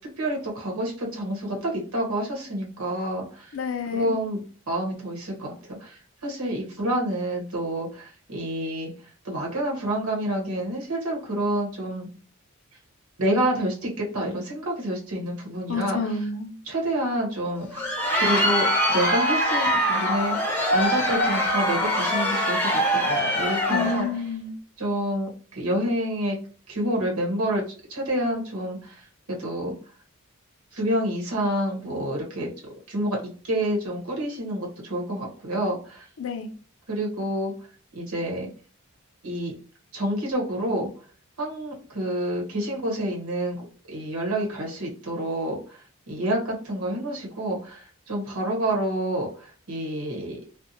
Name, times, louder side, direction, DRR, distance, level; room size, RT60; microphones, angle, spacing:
voice 1, 0.2-3.5 3.9-4.4 4.7-12.1 13.2-16.1 16.6-20.4 20.7-24.1 24.8-26.4 26.7-27.6 27.9-29.7 30.7-32.5 32.9-33.2 33.4-36.1 36.9-37.5 37.9-38.5 39.2-39.5 39.9-40.9 41.4-50.4, right 1 dB, 80° right, -1 dB, 1.0 m, -28 dB
voice 2, 3.5-4.2 15.7-16.5 23.7-24.5 36.2-36.5, left 5 dB, 60° left, 7 dB, 0.4 m, -29 dB
Crowd, 17.6-24.1, equal, 10° left, 0.7 m, -23 dB
2.6 x 2.0 x 2.7 m, 0.41 s
head